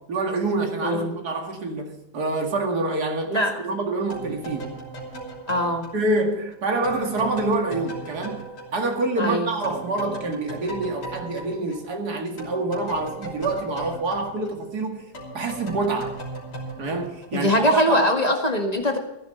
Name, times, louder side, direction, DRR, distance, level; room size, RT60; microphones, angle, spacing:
voice 1, 0.1-4.8 5.9-15.1 15.3-16.2 16.8-18.0, right 2 dB, 75° right, 2.6 m, -27 dB
sound 1, 4.1-9.3 9.6-17.8, right 2 dB, 90° left, 3.9 m, -38 dB
voice 2, 5.5-5.9 9.2-9.5 17.3-19.0, equal, 25° left, 2.0 m, -22 dB
15.5 x 11.5 x 4.4 m
omnidirectional pair, 1.7 m